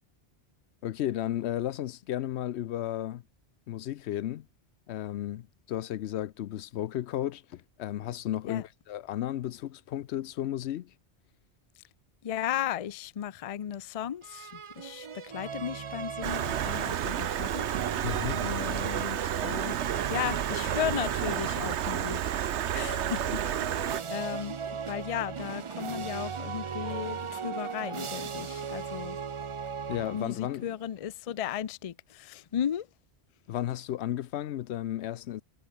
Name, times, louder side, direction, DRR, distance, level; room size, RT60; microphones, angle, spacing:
voice 1, 0.8-3.2 3.7-4.5 4.9-10.9 18.0-18.4 29.9-30.7 33.5-35.4, left 12 dB, 75° left, 0.9 m, -34 dB
voice 2, 12.2-18.1 18.4-19.8 20.1-24.6 24.9-29.2 30.1-32.9, left 10 dB, 45° left, 0.4 m, -35 dB
sound 1, 14.2-22.1 22.7-30.6, right 6 dB, 40° right, 0.5 m, -38 dB
Stream, 16.2-24.0, right 10 dB, 85° right, 1.1 m, -31 dB
omnidirectional pair, 1.1 m